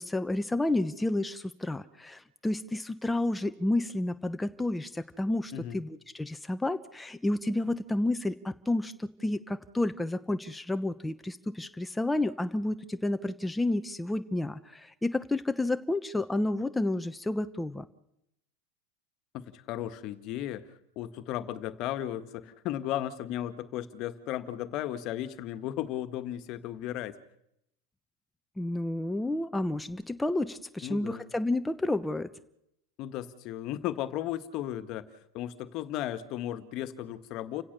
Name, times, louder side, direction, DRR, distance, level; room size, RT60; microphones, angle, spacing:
voice 1, 0.0-17.9 28.6-32.3, left 2 dB, 5° left, 9 dB, 1.0 m, -30 dB
voice 2, 19.3-27.2 30.8-31.3 33.0-35.0 35.3-37.6, left 12 dB, 50° left, 12 dB, 1.7 m, -35 dB
30.0 x 16.5 x 6.8 m, 0.82 s
supercardioid pair, 115°, 0 cm